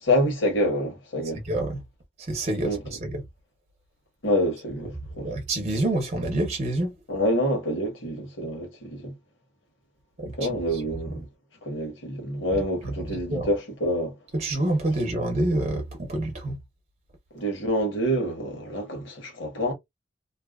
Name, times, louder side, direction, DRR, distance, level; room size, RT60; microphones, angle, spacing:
voice 1, 0.0-1.4 2.6-2.8 4.2-5.3 7.1-9.1 10.4-11.2 11.6-14.1 17.3-19.7, equal, 80° left, 1.2 m, -27 dB
voice 2, 1.4-1.8 2.2-3.2 5.2-6.9 10.2-10.8 12.5-13.5 14.3-16.6, right 1 dB, 35° right, 0.7 m, -28 dB
2.6 x 2.2 x 2.3 m
head